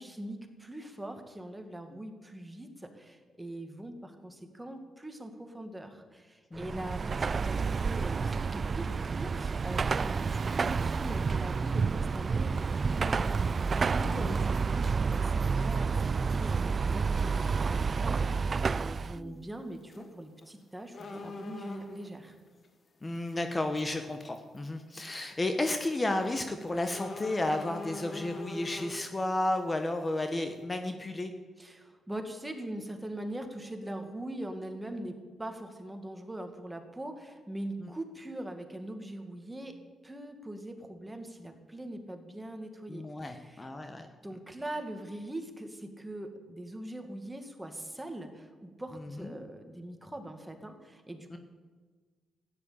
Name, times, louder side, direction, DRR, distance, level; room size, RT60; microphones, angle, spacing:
voice 1, 0.0-13.4 13.9-22.4 31.6-39.8 40.0-43.7 44.2-51.4, right 1 dB, 10° right, 5 dB, 2.2 m, -42 dB
voice 2, 6.5-6.8 14.0-14.3 19.2-19.4 23.0-31.3 37.8-37.9 42.9-44.1 49.2-49.3 51.3-51.4, left 2 dB, 25° left, 6 dB, 1.3 m, -32 dB
Car passing by / Traffic noise roadway noise / Engine, 6.6-19.2, right 5 dB, 45° right, 0.3 m, -29 dB
sound 1, 15.2-15.3 16.9-17.1 17.5-17.6 17.8-17.9 19.8-20.1 20.4-20.5 20.9-22.1 23.2-23.3 23.8-23.9 24.4-24.6 25.0-25.1 26.9-29.1, left 2 dB, 50° left, 1.9 m, -42 dB
13.0 x 10.0 x 8.7 m, 1.4 s
cardioid pair, 70°, 0 cm